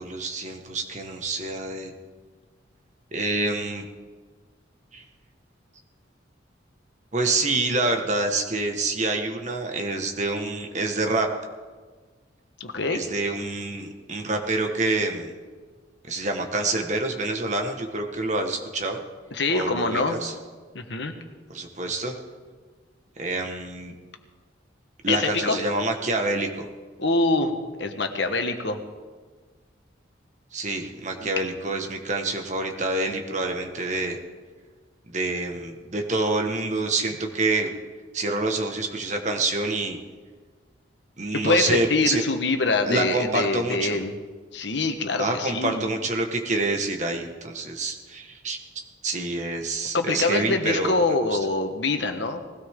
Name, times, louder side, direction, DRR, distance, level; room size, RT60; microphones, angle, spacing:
voice 1, 0.0-1.9 3.1-3.9 4.9-5.0 7.1-11.3 12.9-15.3 16.0-19.0 19.5-20.3 21.5-22.2 23.2-23.9 25.0-26.7 30.5-34.2 35.1-37.7 38.1-40.0 41.2-42.2 42.8-44.0 45.2-48.6 49.0-51.4, right 2 dB, 40° right, 4 dB, 1.5 m, -27 dB
voice 2, 12.6-13.0 19.3-20.2 20.7-21.1 25.1-25.6 27.0-27.5 27.8-28.8 31.2-31.3 41.4-44.1 44.5-45.9 49.9-52.4, left 3 dB, 70° left, 6 dB, 1.4 m, -24 dB
20.0 x 16.5 x 3.8 m, 1.4 s
head